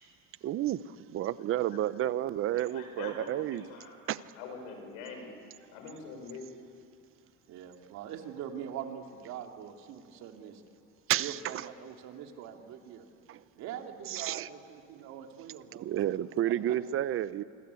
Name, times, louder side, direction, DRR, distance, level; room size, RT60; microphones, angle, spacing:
voice 1, 0.4-0.8 1.1-3.6 4.1-4.2 11.1-11.6 13.3-13.4 14.1-14.5 15.8-17.4, right 12 dB, 45° right, 16 dB, 0.8 m, -31 dB
voice 2, 2.5-5.3 5.7-6.5, left 4 dB, 90° left, 5 dB, 6.4 m, -44 dB
voice 3, 7.5-10.6 11.2-13.1 13.5-16.1 16.4-16.8, right 9 dB, 65° right, 3 dB, 3.1 m, -43 dB
26.0 x 25.5 x 8.4 m, 2.3 s
cardioid pair, 125°, 30 cm